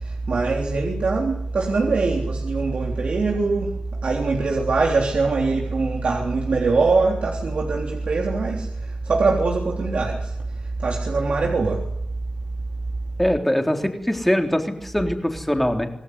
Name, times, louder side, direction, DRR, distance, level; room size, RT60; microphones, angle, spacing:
voice 1, 0.3-3.7 4.0-8.7 9.1-10.3 10.8-11.8, right 3 dB, 80° right, 0 dB, 3.7 m, -22 dB
voice 2, 13.2-15.9, left 1 dB, 5° left, 4 dB, 3.6 m, -22 dB
26.5 x 18.0 x 9.7 m, 0.79 s
wide cardioid pair, 105°, 2 cm